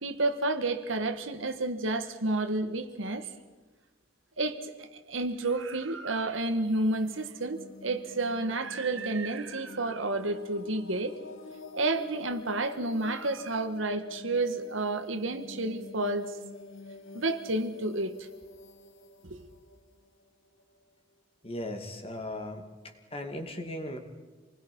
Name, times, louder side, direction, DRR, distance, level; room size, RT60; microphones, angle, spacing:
voice 1, 0.0-3.3 4.4-11.1 11.7-16.3 17.1-18.1 19.2-19.4, right 2 dB, 80° right, 8 dB, 1.7 m, -30 dB
sound 1, 6.3-21.0, left 3 dB, 90° left, 1.5 m, -48 dB
voice 2, 21.4-24.0, left 1 dB, 30° left, 5 dB, 2.5 m, -38 dB
27.0 x 20.5 x 5.5 m, 1.3 s
head